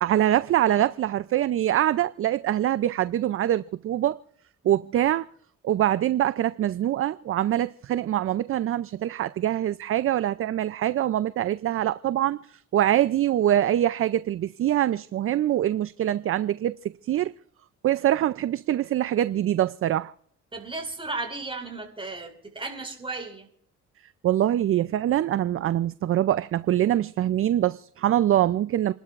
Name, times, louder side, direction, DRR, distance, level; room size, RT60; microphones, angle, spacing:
voice 1, 0.0-4.2 4.6-5.3 5.6-16.8 17.0-17.3 17.8-20.1 24.2-28.9, right 12 dB, 45° right, 0.4 m, -24 dB
voice 2, 20.5-23.5, right 3 dB, 20° right, 4.8 m, -35 dB
29.0 x 12.0 x 2.5 m
cardioid pair, 90°, 30 cm